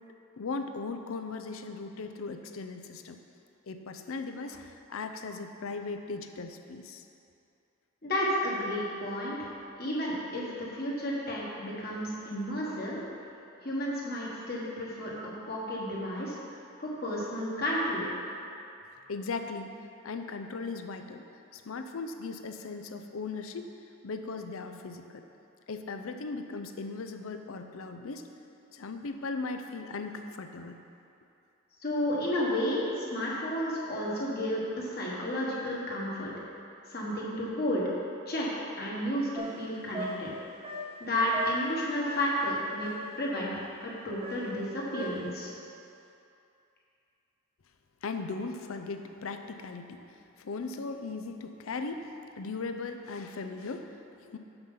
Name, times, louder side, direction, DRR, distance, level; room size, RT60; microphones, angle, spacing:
voice 1, 0.4-3.2 3.7-7.0 19.1-19.7 20.0-21.2 21.5-23.7 24.0-25.2 25.7-28.2 28.7-30.8 48.0-52.0 52.4-54.4, left 4 dB, 70° left, 7 dB, 0.5 m, -38 dB
voice 2, 8.0-9.4 9.8-13.0 13.6-15.1 15.5-16.4 16.8-18.1 31.8-36.3 36.9-37.8 38.3-38.5 38.8-40.3 41.0-42.9 43.2-43.5 43.8-45.5, equal, 45° left, -5 dB, 1.5 m, -32 dB
sound 1, 39.3-42.5 42.8-43.3 44.2-45.4, right 1 dB, 25° right, 0.8 m, -40 dB
6.7 x 5.9 x 5.6 m, 2.7 s
head